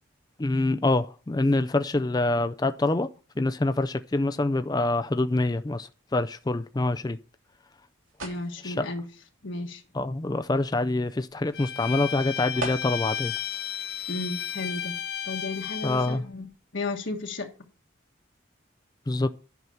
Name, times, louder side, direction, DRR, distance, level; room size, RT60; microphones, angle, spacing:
voice 1, 0.4-3.1 3.4-7.2 8.6-8.9 9.9-13.3 15.8-16.2 19.1-19.3, left 2 dB, 20° left, 0.4 m, -25 dB
sound 1, 6.8-13.2, right 2 dB, 90° right, 3.5 m, -44 dB
voice 2, 8.2-9.1 9.4-9.8 14.1-15.0 15.2-17.5, left 2 dB, 70° left, 1.4 m, -34 dB
Bowed string instrument, 11.5-16.2, left 10 dB, 55° left, 0.7 m, -33 dB
11.0 x 5.9 x 5.6 m
head